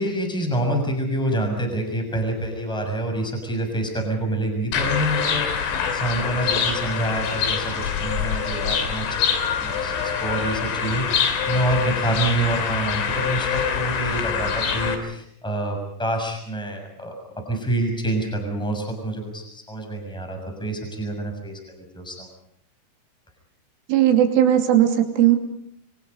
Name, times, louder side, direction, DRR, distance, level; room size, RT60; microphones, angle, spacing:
voice 1, 0.0-22.3, right 1 dB, ahead, 3 dB, 5.9 m, -27 dB
sound 1, 4.7-15.0, left 7 dB, 85° left, 5.4 m, -25 dB
voice 2, 23.9-25.4, right 11 dB, 90° right, 4 dB, 5.3 m, -17 dB
29.0 x 24.5 x 5.5 m, 0.70 s
omnidirectional pair, 5.5 m